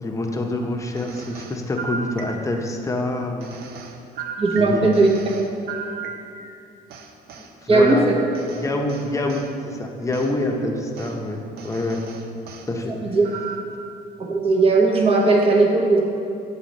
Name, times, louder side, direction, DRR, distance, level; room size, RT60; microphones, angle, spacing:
voice 1, 0.0-3.5 4.5-4.9 7.4-8.1 8.5-12.0 12.7-12.9, left 1 dB, 20° left, 2 dB, 0.8 m, -26 dB
sound 1, 1.0-2.7 3.4-6.6 6.9-9.5 10.1-10.3 11.0-11.2 11.6-12.7 13.2-13.8, right 5 dB, 65° right, 0.6 m, -36 dB
voice 2, 4.4-5.1 7.7-8.1 13.0-13.2 14.2-16.0, right 3 dB, 35° right, -1 dB, 1.0 m, -17 dB
7.4 x 4.1 x 5.3 m, 2.6 s
cardioid pair, 110°, 17 cm